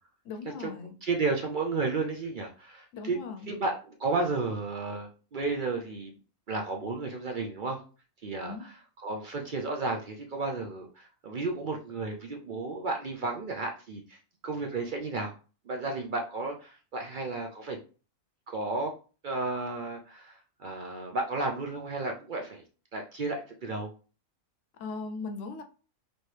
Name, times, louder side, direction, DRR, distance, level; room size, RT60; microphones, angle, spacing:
voice 1, 0.2-0.9 2.9-3.6 8.4-8.6 24.8-25.6, left 4 dB, 65° left, 0.9 m, -38 dB
voice 2, 1.0-3.2 3.5-6.1 6.5-7.8 8.2-15.3 15.7-17.8 18.5-18.9 19.2-22.6 22.9-23.9, right 3 dB, 65° right, 0.5 m, -33 dB
4.3 x 3.0 x 3.2 m
omnidirectional pair, 1.5 m